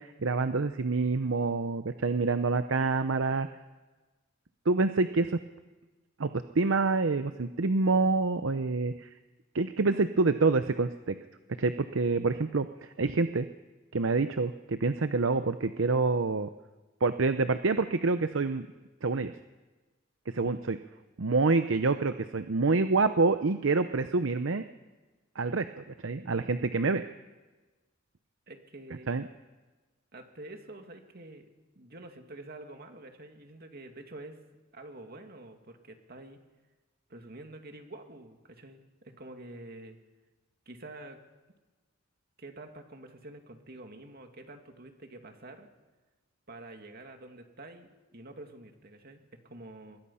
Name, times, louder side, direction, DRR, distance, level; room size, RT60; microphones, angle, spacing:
voice 1, 0.0-3.5 4.7-5.4 6.2-9.1 9.5-11.2 11.6-13.5 13.9-16.5 17.0-18.7 19.0-19.3 20.3-20.8 21.2-24.6 25.4-25.7 26.0-27.0 29.1-29.2, right 3 dB, 70° right, 10 dB, 0.7 m, -27 dB
voice 2, 28.5-29.1 30.1-31.5 31.8-34.4 34.7-36.4 37.1-40.0 40.7-41.2 42.4-45.7 46.5-50.0, right 2 dB, 50° right, 5 dB, 2.4 m, -47 dB
25.5 x 21.5 x 5.7 m, 1.2 s
head